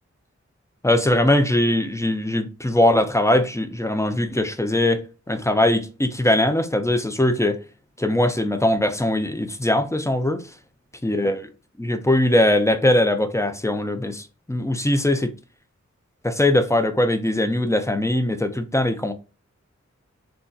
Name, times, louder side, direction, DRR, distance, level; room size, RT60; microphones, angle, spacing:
voice 1, 0.8-7.6 8.0-10.4 11.0-11.5 11.8-15.3 16.2-19.1, left 1 dB, 10° left, 0.5 m, -21 dB
3.3 x 2.7 x 2.3 m
wide cardioid pair, 65°, 29 cm